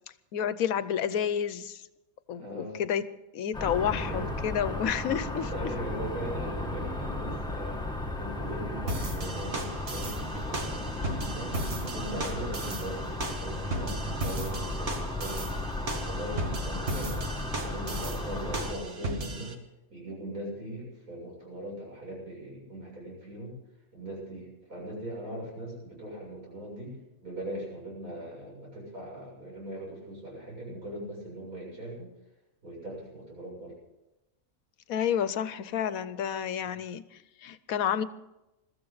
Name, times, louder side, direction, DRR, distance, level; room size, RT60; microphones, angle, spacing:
voice 1, 0.3-1.8 2.3-3.1 3.3-5.5 34.9-38.0, left 8 dB, 80° left, 14 dB, 1.2 m, -30 dB
voice 2, 2.3-2.8 3.7-4.8 5.3-7.9 8.2-15.5 15.8-17.3 17.6-19.6 19.9-23.5 23.9-32.1 32.6-33.8 36.6-36.7, right 1 dB, 85° right, -3 dB, 8.1 m, -40 dB
sound 1, 3.5-18.7, left 1 dB, 5° left, 1.6 m, -35 dB
sound 2, 8.9-19.5, right 2 dB, 50° right, 1.9 m, -36 dB
22.0 x 14.0 x 4.0 m, 0.96 s
omnidirectional pair, 1.5 m